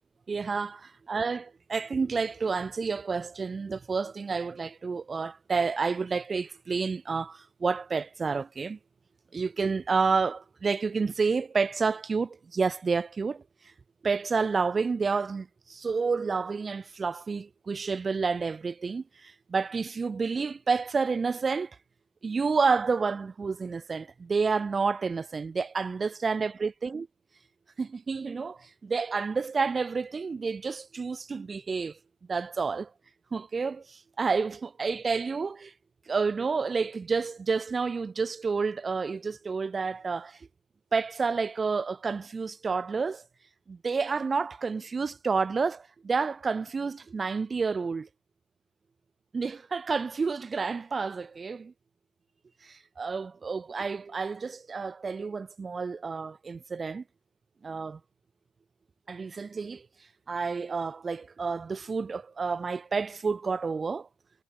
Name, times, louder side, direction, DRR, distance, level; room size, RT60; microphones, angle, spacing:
voice 1, 0.3-8.8 9.3-13.4 14.0-21.7 22.2-27.1 27.8-32.0 32.3-32.9 33.3-35.7 36.1-40.4 40.9-43.2 43.7-48.1 49.3-51.7 52.6-57.0 57.6-58.0 59.1-59.9 60.3-64.1, right 4 dB, 30° right, 2.2 m, -29 dB
hypercardioid pair, 60°, 0 cm